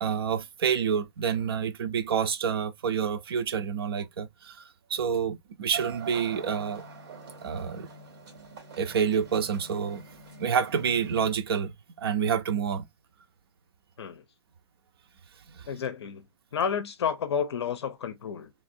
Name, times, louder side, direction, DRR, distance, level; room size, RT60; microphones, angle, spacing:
voice 1, 0.0-6.9 7.4-7.9 8.8-10.0 10.4-11.7 12.0-12.9 15.5-15.7, right 7 dB, 60° right, 0.6 m, -28 dB
sound 1, 5.7-11.4, right 5 dB, 40° right, 2.2 m, -44 dB
voice 2, 15.7-16.2 16.5-18.5, left 7 dB, 70° left, 0.6 m, -30 dB
3.2 x 2.6 x 2.6 m
hypercardioid pair, 175°, 14 cm